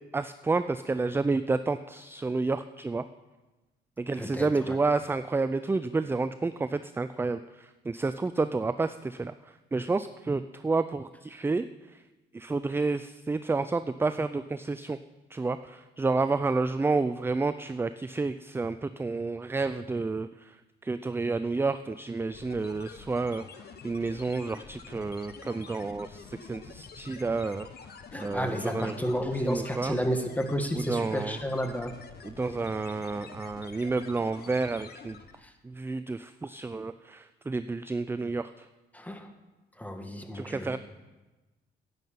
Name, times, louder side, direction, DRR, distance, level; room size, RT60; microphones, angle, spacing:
voice 1, 0.0-3.0 4.0-12.0 12.3-15.0 15.3-29.0 29.4-30.0 30.7-31.4 32.2-35.2 35.6-38.7 40.3-40.8, right 3 dB, 10° right, 12 dB, 0.3 m, -30 dB
voice 2, 4.2-4.8 28.1-31.9 35.4-35.5 38.9-39.3 39.8-40.8, equal, 10° left, 6 dB, 1.4 m, -31 dB
sound 1, 22.3-35.5, left 6 dB, 55° left, 1.1 m, -47 dB
10.5 x 9.3 x 5.8 m, 1.1 s
cardioid pair, 90°, 20 cm